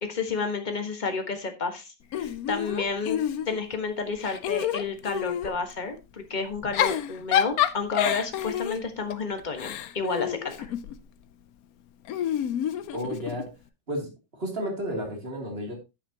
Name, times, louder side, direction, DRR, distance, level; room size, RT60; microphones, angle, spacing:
voice 1, 0.0-3.2 3.5-10.7, left 4 dB, 25° left, 6 dB, 1.4 m, -31 dB
Giggle / Chuckle chortle, 2.1-3.7 4.2-5.6 6.5-11.0 12.1-13.5, left 10 dB, 65° left, 1.0 m, -28 dB
voice 2, 12.9-13.5 13.9-14.1 14.4-15.7, equal, 30° right, 1 dB, 3.0 m, -32 dB
10.0 x 8.9 x 2.9 m, 0.24 s
omnidirectional pair, 2.0 m